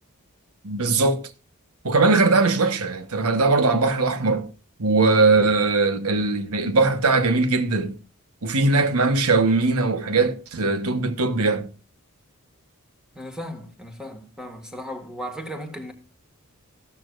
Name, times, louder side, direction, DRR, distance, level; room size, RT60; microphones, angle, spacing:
voice 1, 0.6-1.2 1.8-4.5 4.8-8.0 8.4-11.7, right 3 dB, 80° right, 1.2 m, -20 dB
voice 2, 13.1-15.9, equal, 5° right, 1.8 m, -36 dB
14.5 x 12.5 x 2.5 m
head